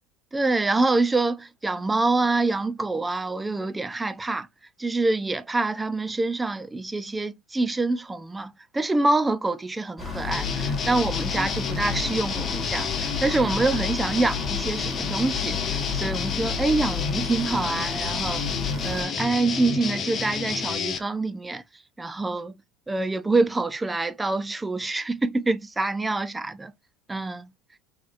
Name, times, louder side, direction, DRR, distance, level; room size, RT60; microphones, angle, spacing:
voice 1, 0.3-4.5 4.8-18.4 18.8-21.6 22.0-22.5 22.9-26.7 27.1-27.5, right 3 dB, 10° right, 0.4 m, -26 dB
sound 1, 10.0-19.0, left 6 dB, 10° left, 1.6 m, -32 dB
sound 2, 10.3-21.0, left 5 dB, 30° left, 0.8 m, -30 dB
4.4 x 3.0 x 2.5 m
supercardioid pair, 135°, 0 cm